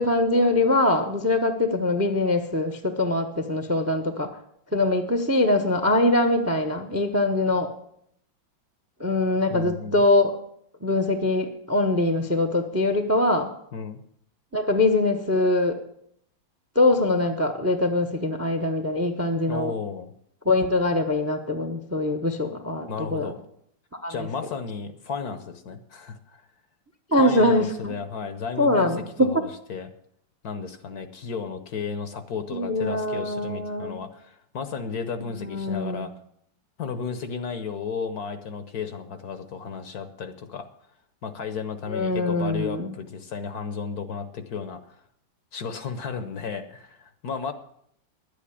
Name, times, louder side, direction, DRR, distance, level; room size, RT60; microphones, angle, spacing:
voice 1, 0.0-4.4 4.7-7.7 9.0-10.4 10.8-13.5 14.5-15.8 16.7-19.7 20.4-23.3 24.0-24.3 27.1-27.9 28.6-29.4 32.5-34.0 35.4-36.1 41.9-42.9, left 2 dB, 15° right, 7 dB, 0.6 m, -23 dB
voice 2, 9.5-10.0 13.7-14.0 19.5-20.1 22.9-23.4 24.1-26.4 27.2-28.9 29.2-29.9 30.4-36.1 36.8-40.7 41.2-45.0 45.5-47.5, left 5 dB, 60° left, 10 dB, 1.3 m, -33 dB
10.5 x 8.5 x 8.5 m, 0.70 s
omnidirectional pair, 2.0 m